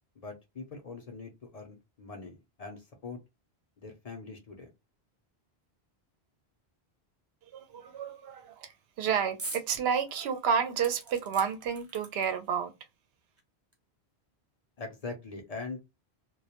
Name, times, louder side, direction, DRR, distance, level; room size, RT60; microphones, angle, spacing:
voice 1, 0.2-3.2 3.8-4.7 14.8-15.8, left 3 dB, 50° left, 0.5 m, -42 dB
voice 2, 7.5-8.7 9.0-12.7, right 7 dB, 75° right, 0.8 m, -30 dB
sound 1, 9.4-9.7 10.1-10.2 10.8-12.5 13.4-13.5 13.7-13.8, right 2 dB, 25° right, 0.3 m, -42 dB
2.2 x 2.1 x 2.8 m
omnidirectional pair, 1.1 m